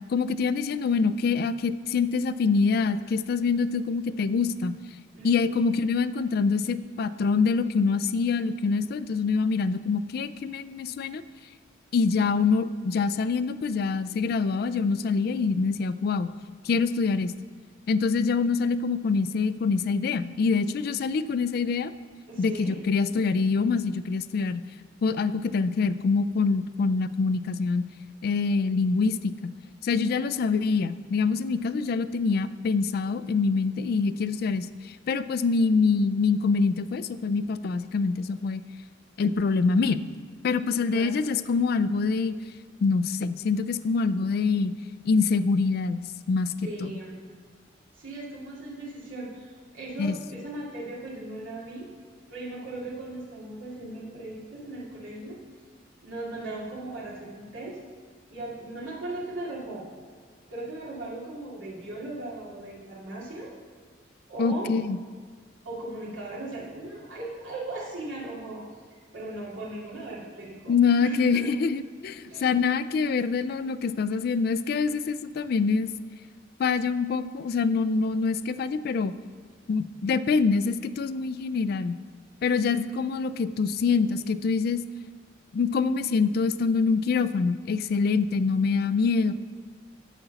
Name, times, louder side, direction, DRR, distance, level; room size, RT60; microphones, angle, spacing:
voice 1, 0.1-4.7 5.2-11.2 11.9-16.3 16.6-17.3 17.9-21.9 22.4-24.6 25.0-27.8 28.2-29.3 29.8-38.6 39.2-40.1 40.4-42.4 42.8-44.7 45.1-46.5 46.8-46.9 50.0-50.2 64.4-65.0 70.7-75.9 76.6-79.1 79.7-82.0 82.4-84.8 85.5-89.3, left 4 dB, 50° left, 13 dB, 0.3 m, -25 dB
voice 2, 5.1-5.6 22.3-22.8 30.0-30.1 40.9-41.3 46.6-47.2 47.9-51.9 52.3-55.4 56.0-57.8 58.3-59.9 60.5-63.5 64.3-64.7 65.6-68.6 69.1-71.5 72.2-72.5 82.4-82.8, right 2 dB, 80° right, -7 dB, 2.6 m, -38 dB
10.0 x 4.0 x 6.9 m, 1.5 s
head